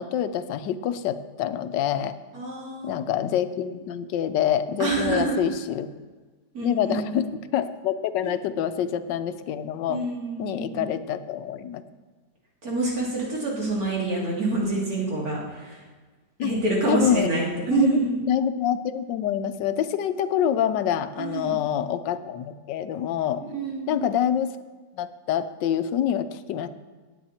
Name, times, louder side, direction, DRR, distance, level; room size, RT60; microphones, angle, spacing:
voice 1, 0.0-2.2 2.8-5.9 6.6-7.3 7.5-10.0 10.4-11.8 16.4-16.5 16.9-17.3 17.7-18.0 18.3-23.4 23.9-24.5 24.9-26.7, left 10 dB, 85° left, 12 dB, 1.3 m, -26 dB
voice 2, 2.3-2.9 4.8-5.4 6.5-7.2 8.2-8.3 9.9-10.8 12.6-15.8 16.4-18.2 21.2-21.6 23.4-24.1, right 3 dB, 55° right, -4 dB, 3.3 m, -27 dB
18.0 x 8.7 x 4.3 m, 1.3 s
omnidirectional pair, 1.9 m